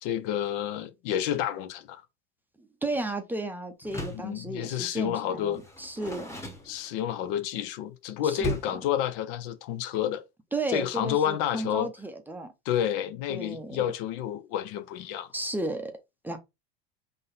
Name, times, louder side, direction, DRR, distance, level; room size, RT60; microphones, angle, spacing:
voice 1, 0.0-2.0 4.2-5.6 6.7-10.2 10.7-11.9 12.7-15.3, left 10 dB, 60° left, 0.7 m, -29 dB
voice 2, 2.8-6.4 8.2-8.7 10.5-12.5 13.3-13.9 15.3-15.9 16.2-16.4, right 2 dB, 5° right, 0.6 m, -34 dB
Door, 3.8-4.4 5.5-7.2 8.4-8.9, right 1 dB, 10° left, 1.1 m, -37 dB
3.9 x 2.6 x 3.9 m
supercardioid pair, 105°, 30 cm